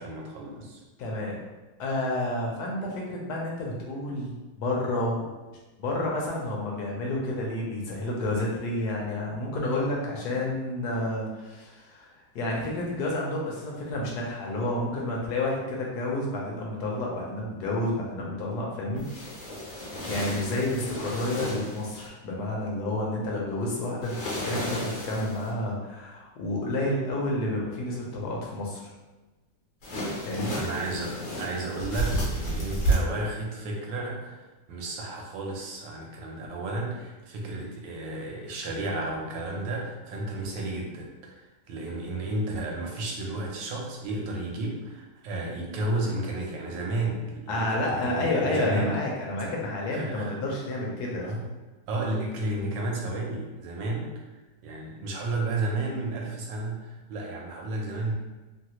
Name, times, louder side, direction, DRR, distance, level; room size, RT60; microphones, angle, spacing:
voice 1, 0.0-0.8 30.6-41.4 41.7-49.0 49.4-49.6 49.9-50.4 51.2-51.5 51.9-54.1 54.6-58.1, right 2 dB, 80° right, -1 dB, 1.4 m, -32 dB
voice 2, 1.0-1.4 1.8-5.3 5.8-19.1 20.1-28.8 30.2-30.6 47.5-51.3, left 1 dB, 65° left, -2 dB, 1.1 m, -30 dB
sound 1, 19.0-22.1 24.0-25.5 29.8-32.9, right 1 dB, 45° left, 1.0 m, -32 dB
3.2 x 2.3 x 2.9 m, 1.2 s
omnidirectional pair, 2.0 m